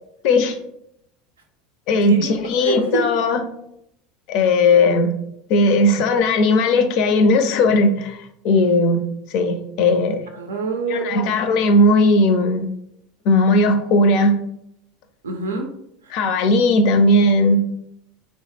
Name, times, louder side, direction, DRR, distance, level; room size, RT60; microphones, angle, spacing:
voice 1, 0.2-0.6 1.9-3.4 4.3-5.1 5.5-10.2 10.9-12.7 13.2-14.4 16.1-17.6, left 2 dB, 60° left, 8 dB, 0.4 m, -17 dB
voice 2, 2.0-3.0 10.3-11.3 15.2-15.7 16.0-16.1, right 4 dB, 85° right, 4 dB, 0.4 m, -26 dB
3.3 x 2.0 x 3.2 m, 0.76 s
hypercardioid pair, 80°, 0 cm